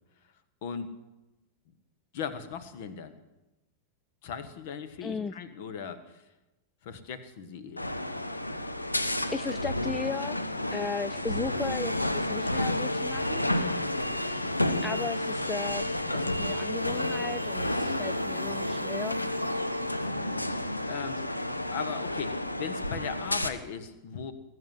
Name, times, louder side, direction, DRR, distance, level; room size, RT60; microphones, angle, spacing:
voice 1, 2.1-3.2 4.2-6.2 6.8-8.0 14.6-14.8 20.0-20.4 20.9-21.2 21.7-24.3, left 6 dB, 50° left, 13 dB, 1.4 m, -38 dB
voice 2, 5.0-5.3 9.3-10.4 10.7-13.4 14.8-19.2, left 4 dB, 15° left, 16 dB, 0.4 m, -36 dB
sound 1, 7.8-23.5, left 1 dB, 85° left, 0.8 m, -31 dB
sound 2, 16.7-21.1, right 2 dB, 85° right, 0.7 m, -42 dB
19.5 x 8.1 x 7.7 m, 1.0 s
figure-of-eight pair, 90°, 0 cm